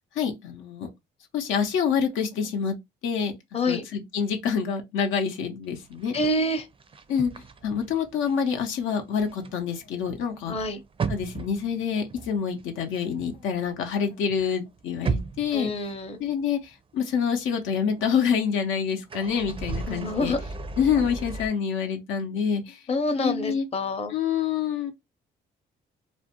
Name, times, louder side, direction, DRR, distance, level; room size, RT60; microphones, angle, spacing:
voice 1, 0.1-0.9 1.3-2.8 3.0-3.4 3.7-6.1 7.1-7.3 7.6-10.5 11.1-15.7 16.2-20.4 20.8-22.8 23.2-23.6 24.1-24.9, left 7 dB, 85° left, 0.6 m, -27 dB
voice 2, 3.5-3.8 6.1-6.7 10.5-10.8 15.5-16.2 19.8-20.4 22.9-24.2, left 2 dB, 30° left, 0.6 m, -27 dB
sound 1, 5.9-8.5 8.8-14.0 14.3-16.3 16.7-16.8 19.0-21.5, right 4 dB, 25° right, 0.4 m, -35 dB
2.5 x 2.1 x 2.8 m
cardioid pair, 90°, 20 cm